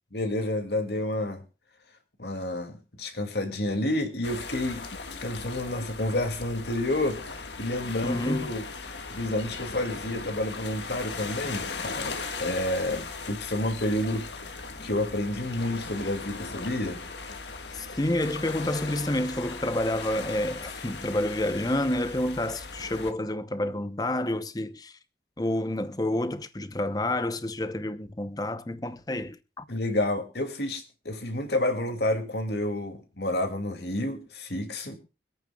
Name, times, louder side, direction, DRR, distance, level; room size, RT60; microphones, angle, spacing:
voice 1, 0.1-1.4 2.2-4.8 5.2-8.6 9.1-17.0 29.7-35.0, left 1 dB, 70° left, 2.5 m, -30 dB
sound 1, 4.2-23.1, left 4 dB, 85° left, 1.7 m, -38 dB
voice 2, 8.0-8.5 17.7-24.9 25.4-29.6, left 1 dB, 20° left, 0.8 m, -29 dB
25.0 x 9.0 x 2.4 m
head